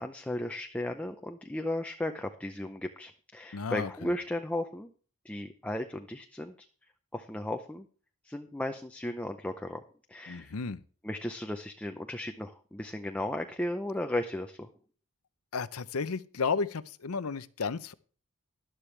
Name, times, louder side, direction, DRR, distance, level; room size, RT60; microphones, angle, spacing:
voice 1, 0.0-4.9 5.2-6.7 7.1-7.9 8.2-9.8 10.1-10.5 11.0-14.7, left 1 dB, 5° left, 0.6 m, -35 dB
voice 2, 3.5-4.1 10.3-10.8 15.5-17.9, left 5 dB, 70° left, 0.7 m, -33 dB
12.0 x 11.5 x 3.3 m
head